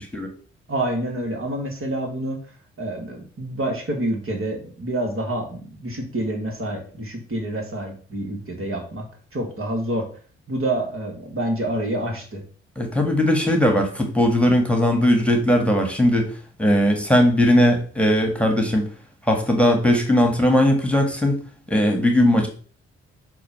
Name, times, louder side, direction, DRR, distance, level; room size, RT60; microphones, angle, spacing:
voice 1, 0.7-2.4 2.8-9.1 9.3-10.1 10.5-12.4, right 1 dB, 45° right, 2 dB, 1.8 m, -27 dB
voice 2, 12.8-16.3 16.6-18.9 19.3-21.4 21.7-22.5, left 1 dB, 5° left, 3 dB, 1.6 m, -18 dB
6.6 x 2.5 x 5.5 m, 0.42 s
hypercardioid pair, 40°, 30 cm